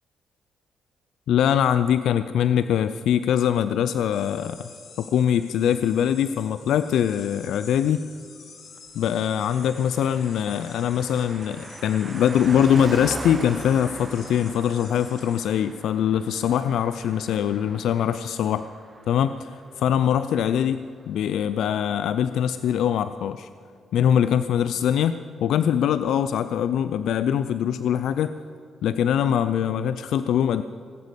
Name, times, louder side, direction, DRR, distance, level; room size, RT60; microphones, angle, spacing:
voice 1, 1.3-4.7 5.0-8.0 9.0-18.6 19.1-19.3 19.8-23.5 23.9-25.1 25.4-28.3 28.8-30.6, left 9 dB, 80° left, 12 dB, 0.4 m, -22 dB
sound 1, 4.1-15.6, left 5 dB, 60° left, 2.2 m, -48 dB
Car passing by, 9.3-21.1 21.4-21.5, right 3 dB, 25° right, 0.8 m, -41 dB
19.0 x 8.3 x 8.1 m, 2.3 s
cardioid pair, 110°, 0 cm